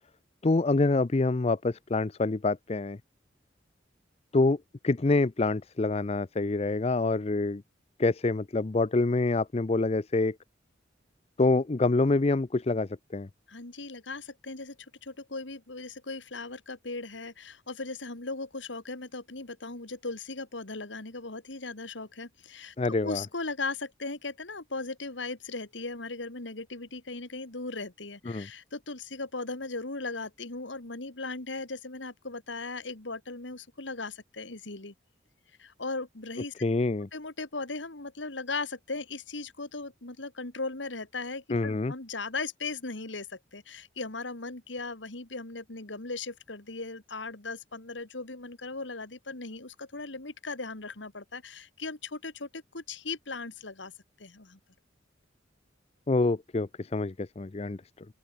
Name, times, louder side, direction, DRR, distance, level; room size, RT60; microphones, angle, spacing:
voice 1, 0.4-3.0 4.3-4.6 4.8-7.6 8.0-10.4 11.4-13.3 22.8-23.2 28.3-28.5 36.6-37.1 41.5-41.9 56.1-58.1, left 3 dB, 35° left, 0.5 m, -26 dB
voice 2, 13.5-14.8 15.0-22.7 23.0-34.9 35.6-36.6 37.1-53.9 54.2-54.6, left 3 dB, 85° left, 2.4 m, -38 dB
open air
head